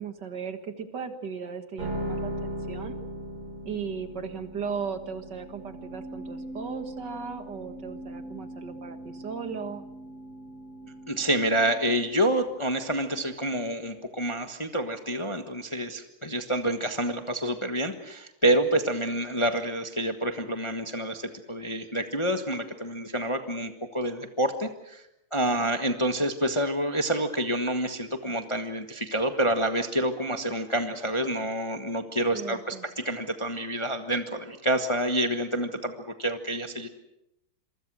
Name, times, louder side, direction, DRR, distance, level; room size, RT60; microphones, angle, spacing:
voice 1, 0.0-3.0 3.7-9.8 32.3-32.8, right 6 dB, 55° right, 8 dB, 2.1 m, -37 dB
sound 1, 1.8-14.1, equal, 85° right, 5.3 m, -40 dB
voice 2, 10.8-25.0 25.3-36.9, right 1 dB, 15° left, 6 dB, 1.2 m, -28 dB
27.0 x 24.0 x 6.3 m, 0.84 s
omnidirectional pair, 2.4 m